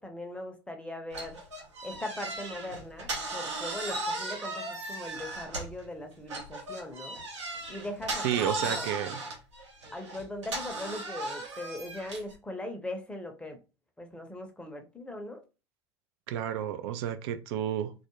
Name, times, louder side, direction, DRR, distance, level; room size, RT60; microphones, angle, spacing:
voice 1, 0.0-1.4 1.8-7.2 7.7-8.9 9.9-13.6 14.0-15.4, left 1 dB, 5° left, 0.6 m, -40 dB
sound 1, 1.1-5.9 6.3-12.3, right 2 dB, 85° right, 0.8 m, -37 dB
voice 2, 8.2-9.2 16.3-17.9, right 10 dB, 65° right, 0.4 m, -31 dB
2.3 x 2.1 x 3.0 m
hypercardioid pair, 80°, 14 cm